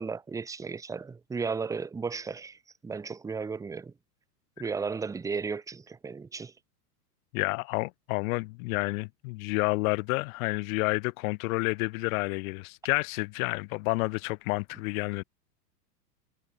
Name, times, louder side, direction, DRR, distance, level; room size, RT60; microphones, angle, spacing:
voice 1, 0.0-3.9 4.6-6.5, right 5 dB, 5° right, 0.6 m, -34 dB
voice 2, 7.3-15.2, left 26 dB, 55° left, 2.6 m, -30 dB
hypercardioid pair, 115°, 48 cm